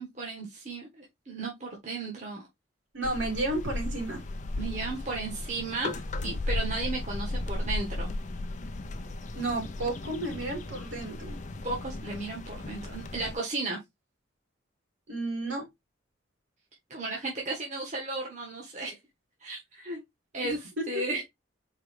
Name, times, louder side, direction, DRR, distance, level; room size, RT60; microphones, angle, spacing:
voice 1, 0.0-2.5 4.6-8.1 11.6-13.8 16.9-19.0 19.4-20.0 20.3-21.2, right 2 dB, 40° right, 1.3 m, -35 dB
voice 2, 2.9-4.2 9.3-11.4 15.1-15.7 20.4-21.0, right 2 dB, 70° right, 3.1 m, -32 dB
sound 1, 3.0-13.4, left 2 dB, 40° left, 0.5 m, -35 dB
4.7 x 3.1 x 3.3 m
head